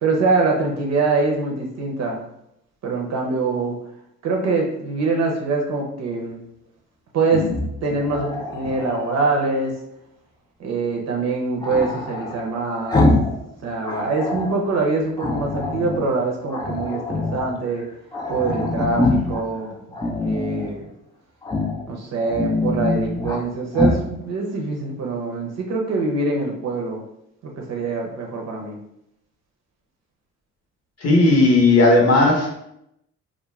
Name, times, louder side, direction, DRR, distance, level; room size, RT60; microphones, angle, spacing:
voice 1, 0.0-2.2 2.8-3.8 4.2-6.4 7.1-7.5 7.8-9.8 10.6-13.1 13.4-17.8 18.3-19.8 20.2-20.9 21.9-27.0 27.4-28.8, right 3 dB, 60° right, 0 dB, 0.6 m, -24 dB
Growling, 7.2-9.2 11.6-13.4 13.7-14.6 15.2-16.1 16.5-17.5 17.8-17.9 18.1-19.4 19.9-20.7 21.4-21.8 22.2-23.4 23.7-24.0, left 2 dB, 15° left, 0.4 m, -24 dB
voice 2, 31.0-32.6, left 2 dB, 55° left, -1 dB, 0.8 m, -15 dB
2.3 x 2.1 x 3.1 m, 0.78 s
cardioid pair, 90°, 30 cm